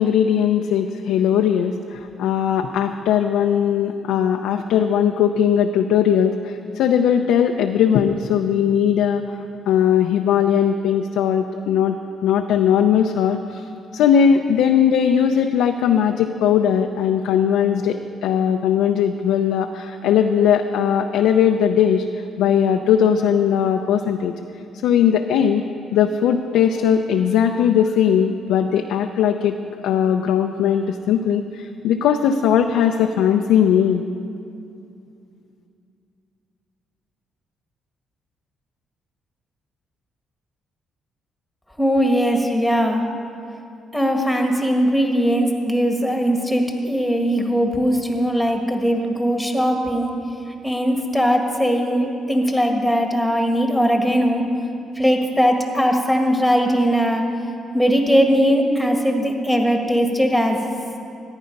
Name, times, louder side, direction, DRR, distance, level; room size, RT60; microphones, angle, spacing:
voice 1, 0.0-9.4 9.7-13.6 13.9-24.3 24.8-25.6 25.9-29.5 29.8-34.1, left 8 dB, 90° left, 4 dB, 0.5 m, -19 dB
voice 2, 41.8-43.0 43.9-50.1 50.6-54.4 54.9-57.2 57.7-60.6, equal, ahead, 2 dB, 1.7 m, -19 dB
14.5 x 9.8 x 5.3 m, 2.6 s
cardioid pair, 90°, 0 cm